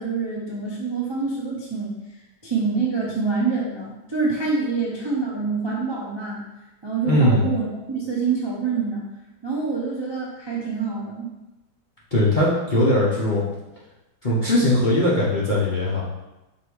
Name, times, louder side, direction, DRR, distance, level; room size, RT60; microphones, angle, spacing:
voice 1, 0.0-1.9 2.4-6.4 6.8-9.0 9.4-11.3, right 4 dB, 35° right, -5 dB, 0.4 m, -26 dB
voice 2, 7.0-7.5 12.1-13.4 14.2-16.0, left 1 dB, 40° left, -7 dB, 0.7 m, -20 dB
5.8 x 3.5 x 4.7 m, 1.0 s
omnidirectional pair, 2.2 m